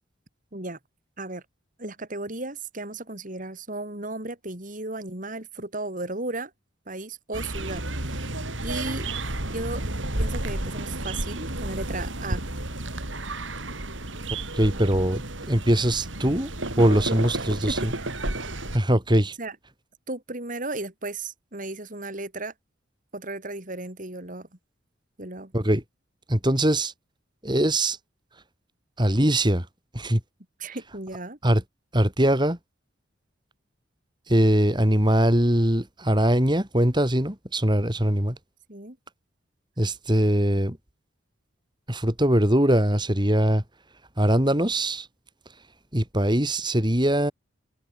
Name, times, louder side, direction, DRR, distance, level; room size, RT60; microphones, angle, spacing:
voice 1, 1.8-6.5 6.9-9.1 9.5-9.8 10.2-12.4 14.7-15.0 17.1-18.1 19.4-19.6 20.1-22.5 23.1-24.5 25.2-25.5 30.6-31.4 38.7-39.0, right 2 dB, 45° right, 3.7 m, -35 dB
sound 1, 7.3-18.8, right 1 dB, 75° right, 5.3 m, -31 dB
voice 2, 14.5-16.5 16.8-17.9 18.7-19.3 25.5-25.8 26.3-26.9 27.4-28.0 29.0-29.7 29.9-30.2 31.4-31.6 31.9-32.6 34.3-38.4 39.8-40.8 41.9-43.6 44.2-45.1 45.9-47.3, right 1 dB, 25° right, 4.2 m, -22 dB
head